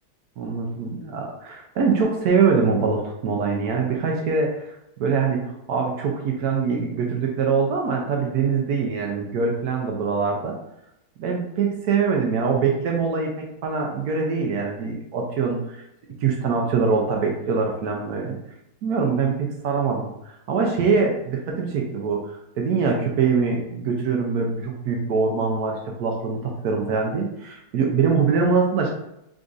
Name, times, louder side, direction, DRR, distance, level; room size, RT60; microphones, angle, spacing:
voice 1, 0.4-10.6 11.2-15.8 16.2-18.4 18.8-19.3 19.6-20.1 20.5-28.9, right 5 dB, 75° right, 0 dB, 1.1 m, -23 dB
3.8 x 3.7 x 2.5 m, 0.81 s
omnidirectional pair, 1.7 m